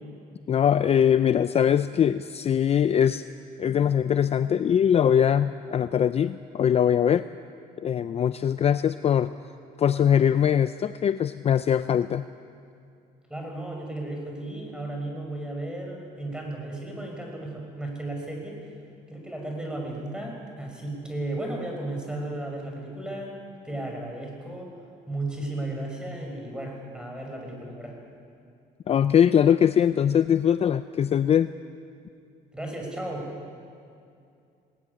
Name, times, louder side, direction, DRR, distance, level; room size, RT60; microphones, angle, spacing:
voice 1, 0.5-3.2 3.6-7.3 7.8-9.3 9.8-12.3 28.9-31.5, left 9 dB, 35° left, 12 dB, 0.5 m, -22 dB
voice 2, 13.3-18.6 19.1-23.3 23.6-24.7 25.1-28.0 32.5-33.3, right 1 dB, 5° right, 1 dB, 6.0 m, -34 dB
19.5 x 18.0 x 9.8 m, 2.4 s
cardioid pair, 110°, 17 cm